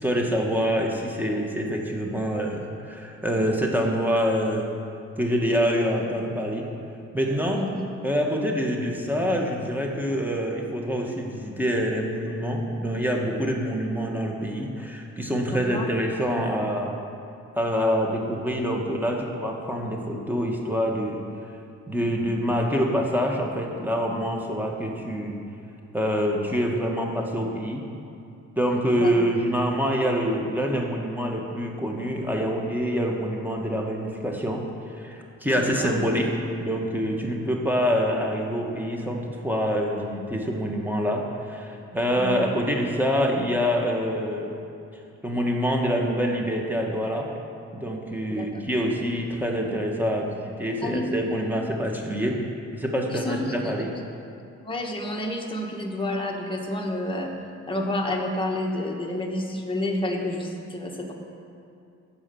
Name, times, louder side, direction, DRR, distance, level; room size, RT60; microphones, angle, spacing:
voice 1, 0.0-4.7 5.2-6.7 7.1-7.7 8.0-17.0 17.5-21.2 21.9-25.4 25.9-27.8 28.5-34.6 35.0-36.3 36.6-44.5 45.2-47.3 47.7-52.4 52.7-53.9, equal, 5° right, 0 dB, 1.7 m, -26 dB
voice 2, 15.5-15.8 29.0-29.1 35.6-36.0 37.3-37.5 42.2-42.4 48.3-48.5 50.8-51.1 53.0-53.6 54.6-57.3 57.7-61.1, left 1 dB, 15° left, 0 dB, 1.7 m, -29 dB
15.0 x 5.0 x 7.1 m, 2.5 s
cardioid pair, 90°, 30 cm